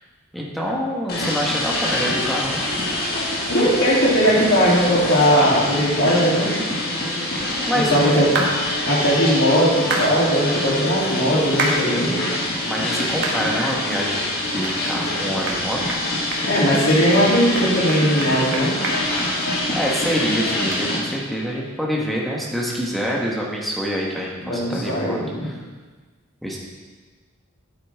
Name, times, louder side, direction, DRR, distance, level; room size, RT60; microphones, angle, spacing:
voice 1, 0.3-2.7 7.7-8.2 12.7-15.8 16.1-16.2 19.7-25.6 26.4-26.6, equal, ahead, -3 dB, 1.4 m, -26 dB
sound 1, 1.1-21.0, left 1 dB, 45° left, 1.9 m, -25 dB
voice 2, 3.5-6.5 7.7-8.3 8.8-12.1 16.5-18.7 24.4-25.5, equal, 70° left, -7 dB, 3.2 m, -19 dB
sound 2, 8.4-8.5 9.9-10.1 11.6-11.8 12.3-12.4 13.2-13.4 13.9-14.0 14.6-14.8 15.1-15.2 15.5-15.6 15.9-16.0 16.3-16.8 17.1-17.2 17.6-19.9 20.2-20.3 20.7-20.8, right 3 dB, 55° right, 1.5 m, -26 dB
9.8 x 8.2 x 3.6 m, 1.4 s
head